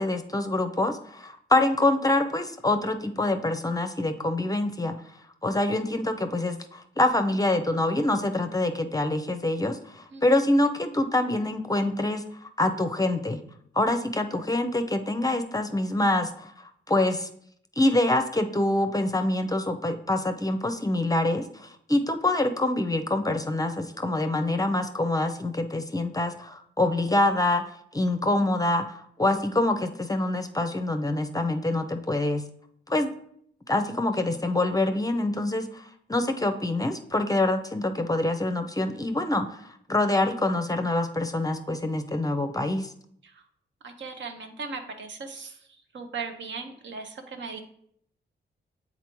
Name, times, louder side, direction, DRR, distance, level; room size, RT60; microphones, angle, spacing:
voice 1, 0.0-5.0 5.4-12.2 12.6-13.4 13.8-16.5 16.9-17.3 17.8-27.6 27.9-32.4 32.9-33.1 33.7-35.8 36.1-39.5 39.9-42.9, left 2 dB, 20° left, 7 dB, 0.5 m, -25 dB
voice 2, 43.8-45.6 45.9-47.6, right 4 dB, 70° right, 5 dB, 0.8 m, -37 dB
8.1 x 4.0 x 3.0 m, 0.69 s
cardioid pair, 75°, 20 cm